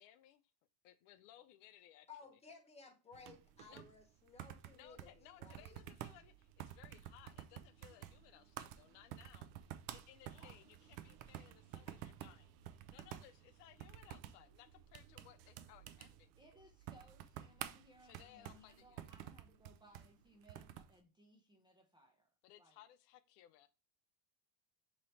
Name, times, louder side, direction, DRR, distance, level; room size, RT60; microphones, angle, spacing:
voice 1, 0.0-0.4 0.8-2.4 3.7-3.9 4.7-12.6 12.9-16.3 18.0-19.1 22.4-23.7, left 12 dB, 80° left, 0.6 m, -62 dB
voice 2, 2.1-5.8 11.9-12.0, left 5 dB, 15° left, 0.9 m, -58 dB
sound 1, 3.1-21.0, right 11 dB, 60° right, 0.5 m, -52 dB
voice 3, 10.3-10.7 16.4-22.3 22.6-22.8, right 1 dB, 10° right, 0.4 m, -65 dB
4.0 x 3.0 x 3.2 m
supercardioid pair, 125°, 48 cm